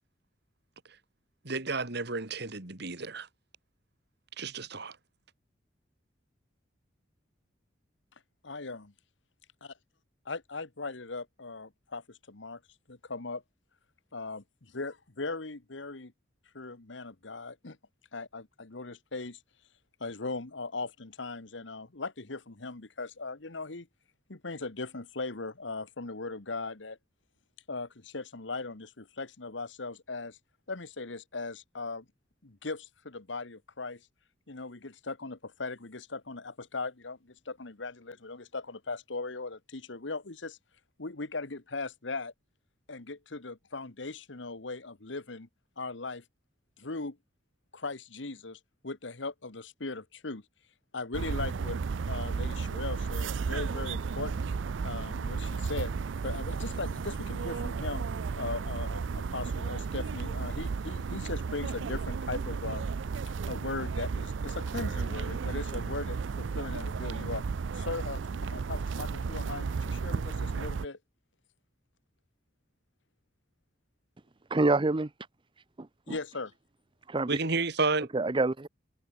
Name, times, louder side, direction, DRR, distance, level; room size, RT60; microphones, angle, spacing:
voice 1, 1.4-3.3 4.4-5.0 77.3-78.1, right 3 dB, 60° right, 2.6 m, -31 dB
voice 2, 8.4-8.9 9.6-9.7 10.2-12.6 12.9-13.4 14.1-16.1 16.5-17.8 18.1-19.4 20.0-23.9 24.3-27.0 27.7-30.4 30.7-32.0 32.4-34.1 34.5-40.6 41.0-42.3 42.9-45.5 45.8-46.2 46.8-47.2 47.7-50.4 50.9-51.8 52.1-54.5 54.8-55.9 56.2-58.1 58.4-62.9 63.5-67.4 67.7-71.0 76.1-76.5, left 3 dB, 75° left, 1.5 m, -39 dB
sound 1, 51.1-70.9, right 5 dB, 80° right, 0.5 m, -33 dB
voice 3, 74.5-75.1 75.8-76.2 77.1-77.4 78.1-78.7, right 2 dB, 25° right, 0.7 m, -27 dB
head